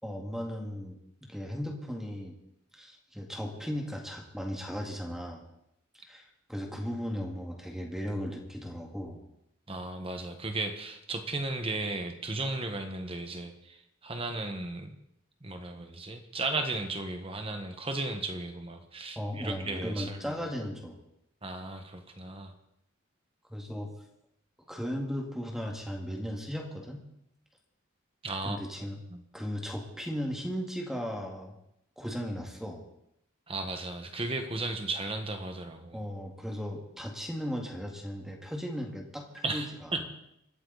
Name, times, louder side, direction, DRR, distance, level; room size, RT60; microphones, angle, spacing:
voice 1, 0.0-2.3 2.7-5.4 6.0-9.2 19.2-21.0 23.5-23.9 24.7-27.1 28.4-29.0 29.3-31.6 32.0-32.8 35.9-40.1, equal, ahead, 1 dB, 2.1 m, -36 dB
voice 2, 9.7-14.9 15.4-20.3 21.4-22.5 28.2-28.6 29.1-29.2 33.5-36.0 39.4-39.7 39.9-40.1, right 2 dB, 25° right, 6 dB, 1.4 m, -35 dB
25.0 x 13.5 x 4.1 m, 0.78 s
head